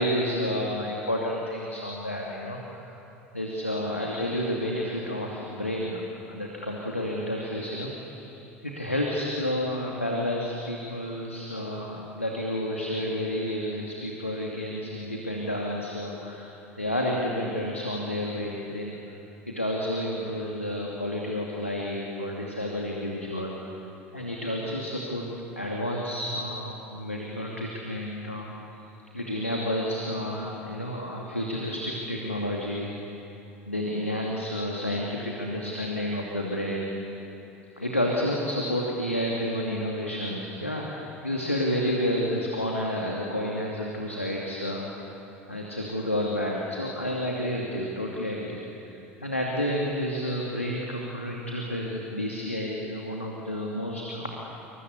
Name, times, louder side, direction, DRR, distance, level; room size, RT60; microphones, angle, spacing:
voice 1, 0.0-2.8 3.3-19.0 19.5-23.6 24.1-25.3 25.6-28.5 29.1-33.0 33.6-37.1 37.8-44.9 45.5-48.9 49.2-54.4, left 1 dB, 90° left, -2 dB, 2.7 m, -30 dB
27.5 x 25.5 x 8.4 m, 3.0 s
figure-of-eight pair, 70°, 7 cm